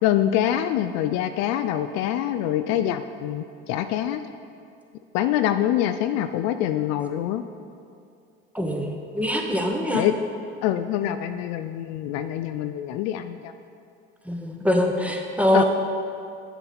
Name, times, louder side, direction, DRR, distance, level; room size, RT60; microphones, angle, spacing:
voice 1, 0.0-4.2 5.1-7.4 9.9-10.2 10.6-13.5 15.5-15.6, left 11 dB, 60° left, 9 dB, 0.4 m, -25 dB
voice 2, 8.5-10.0 14.3-15.6, equal, 5° right, 1 dB, 1.2 m, -23 dB
9.4 x 7.0 x 4.2 m, 2.5 s
hypercardioid pair, 75°, 31 cm